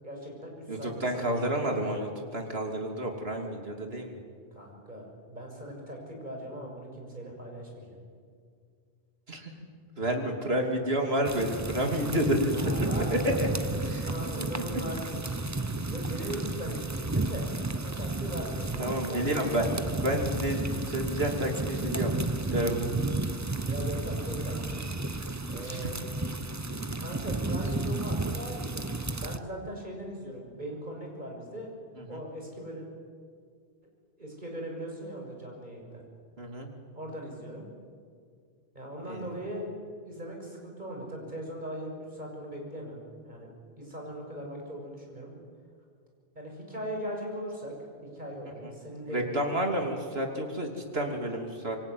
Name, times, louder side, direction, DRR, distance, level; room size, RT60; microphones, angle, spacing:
voice 1, 0.0-1.4 1.7-2.0 4.5-8.0 12.5-15.2 15.9-17.5 17.8-19.8 23.6-24.6 25.5-26.0 27.0-31.7 32.1-32.9 34.2-36.0 36.9-37.6 38.7-39.7 40.0-43.5 43.8-45.3 46.3-47.9 48.1-49.3 49.8-49.9, equal, 45° right, 0 dB, 6.7 m, -39 dB
voice 2, 0.7-4.2 9.3-9.5 10.0-12.7 13.0-13.5 13.9-14.0 14.7-14.8 18.8-22.2 22.5-22.9 25.6-25.9 32.0-32.2 36.4-36.7 39.1-39.3 48.6-48.7 49.1-51.8, right 1 dB, 75° right, 3 dB, 3.4 m, -30 dB
sound 1, 11.2-29.4, right 2 dB, 20° right, 0.8 m, -32 dB
26.5 x 23.5 x 9.5 m, 2.1 s
omnidirectional pair, 1.0 m